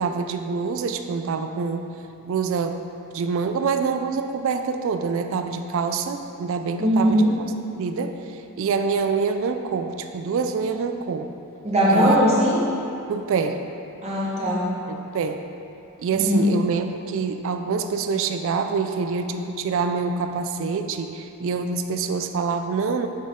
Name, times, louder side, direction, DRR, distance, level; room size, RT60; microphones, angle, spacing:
voice 1, 0.0-1.8 2.2-2.8 3.1-7.2 7.8-11.3 11.9-12.2 13.1-13.6 14.9-15.4 16.0-23.1, right 5 dB, 60° right, 6 dB, 0.3 m, -26 dB
voice 2, 6.8-7.3 11.6-12.6 14.0-14.7 16.1-16.6, equal, 30° right, -6 dB, 1.1 m, -19 dB
6.2 x 5.5 x 3.6 m, 2.8 s
head